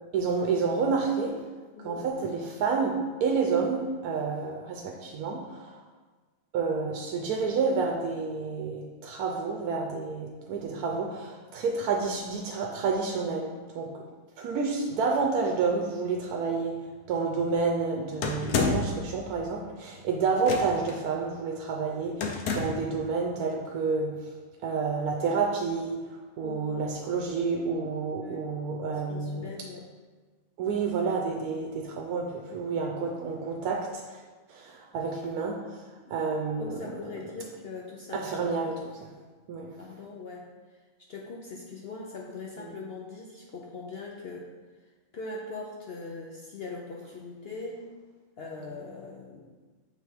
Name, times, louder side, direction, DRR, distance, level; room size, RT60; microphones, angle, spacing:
voice 1, 0.1-1.4 1.8-5.8 6.5-14.0 14.4-24.3 24.6-29.5 30.6-34.2 34.5-36.9 38.1-39.1 39.5-39.8 42.6-42.7 48.6-48.7, right 4 dB, 85° right, 1 dB, 1.1 m, -29 dB
sound 1, 18.2-19.0 20.4-20.9 22.2-22.9, left 4 dB, 80° left, 1.2 m, -28 dB
voice 2, 26.4-26.8 28.2-28.5 28.9-29.9 36.0-36.1 36.6-38.7 39.8-40.5 41.1-44.5 45.1-47.8 48.4-49.5, left 3 dB, 55° left, -2 dB, 0.7 m, -41 dB
7.0 x 3.4 x 4.4 m, 1.3 s
omnidirectional pair, 1.6 m